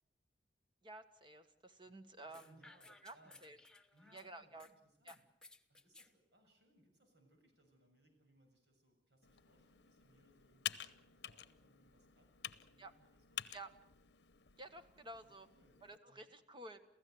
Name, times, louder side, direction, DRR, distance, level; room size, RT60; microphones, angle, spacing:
voice 1, 0.8-2.6 3.0-3.2 3.4-3.6 4.1-4.7 5.0-5.1 12.8-12.9 13.5-13.7 14.6-15.5 15.8-16.8, right 2 dB, 25° right, 8 dB, 1.5 m, -52 dB
voice 2, 1.9-3.6 3.9-5.3 5.7-13.7 15.2-16.4, right 1 dB, 70° right, 3 dB, 7.0 m, -71 dB
sound 1, 2.3-4.7 5.1-6.1, left 2 dB, 5° left, 1.0 m, -61 dB
Computer keyboard, 9.2-16.0, left 10 dB, 65° left, 0.8 m, -50 dB
29.0 x 15.5 x 7.9 m, 0.78 s
head